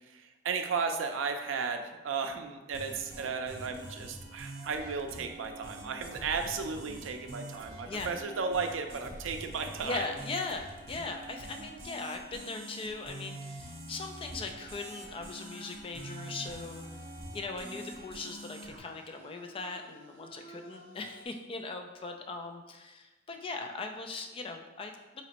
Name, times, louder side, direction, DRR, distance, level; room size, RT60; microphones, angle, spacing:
voice 1, 0.1-10.1, right 5 dB, 80° right, 6 dB, 0.4 m, -34 dB
sound 1, 2.7-18.8, right 1 dB, 50° right, 0.7 m, -45 dB
voice 2, 9.8-17.1 17.3-25.2, left 3 dB, 30° left, 4 dB, 0.3 m, -39 dB
sound 2, 14.9-21.3, equal, 80° left, 1.4 m, -55 dB
4.2 x 2.9 x 2.9 m, 1.1 s
head